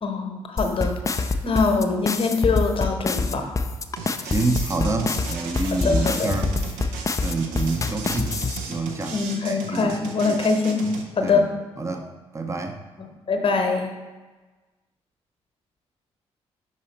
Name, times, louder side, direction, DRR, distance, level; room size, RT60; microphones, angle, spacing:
voice 1, 0.0-3.6 5.8-6.3 9.1-10.9 11.2-11.5 13.0-13.9, left 4 dB, 40° left, 4 dB, 1.0 m, -23 dB
sound 1, 0.6-8.6, left 3 dB, 20° left, 0.4 m, -25 dB
sound 2, 4.0-11.0, right 5 dB, 70° right, 0.7 m, -36 dB
voice 2, 4.2-6.6 7.2-10.4 11.2-11.5 11.8-12.8, right 3 dB, 20° right, 5 dB, 0.7 m, -28 dB
5.5 x 4.2 x 4.2 m, 1.2 s
figure-of-eight pair, 40°, 15 cm